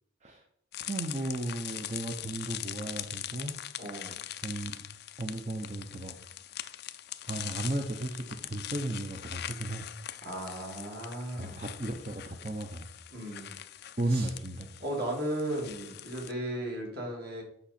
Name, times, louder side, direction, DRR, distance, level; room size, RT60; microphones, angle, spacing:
sound 1, 0.7-16.3, left 13 dB, 50° left, 0.4 m, -42 dB
voice 1, 0.8-3.6 4.4-4.8 5.2-6.1 7.3-9.9 11.4-12.9 14.0-14.7, right 1 dB, 30° right, 3 dB, 0.7 m, -35 dB
voice 2, 3.8-4.2 10.2-11.6 13.1-13.5 14.1-14.3 14.8-17.4, right 1 dB, 50° right, -1 dB, 2.5 m, -36 dB
8.7 x 5.6 x 4.3 m, 0.72 s
head